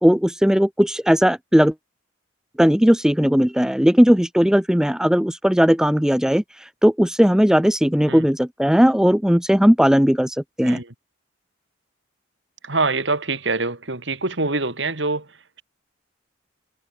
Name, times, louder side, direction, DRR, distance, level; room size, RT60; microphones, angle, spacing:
voice 1, 0.0-1.7 2.6-10.8, equal, 5° right, 0.6 m, -17 dB
voice 2, 10.6-10.9 12.6-15.3, right 3 dB, 65° right, 3.1 m, -24 dB
head